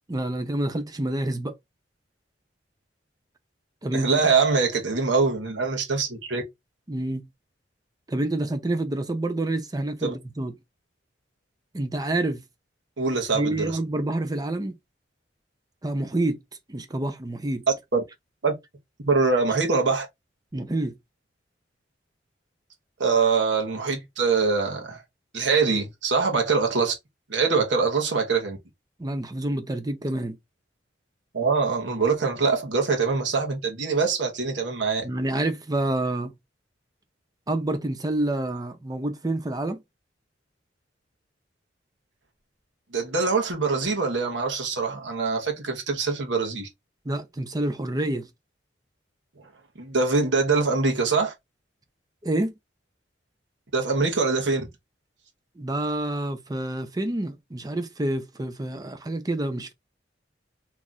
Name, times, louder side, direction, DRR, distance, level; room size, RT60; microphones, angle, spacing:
voice 1, 0.1-1.5 3.8-4.1 6.9-7.3 8.1-10.5 11.7-12.4 13.3-14.8 15.8-16.4 16.7-17.7 20.5-20.9 29.0-30.4 35.0-36.3 37.5-39.8 47.1-48.3 52.2-52.5 55.6-59.7, right 1 dB, 20° right, 0.6 m, -28 dB
voice 2, 3.9-6.4 10.0-10.1 13.0-13.7 17.9-18.0 18.4-18.5 19.0-20.1 23.0-25.0 25.3-26.9 27.3-28.6 31.3-35.1 42.9-46.7 49.8-51.3 53.7-54.6, right 4 dB, 75° right, 1.1 m, -23 dB
3.0 x 2.4 x 3.9 m
head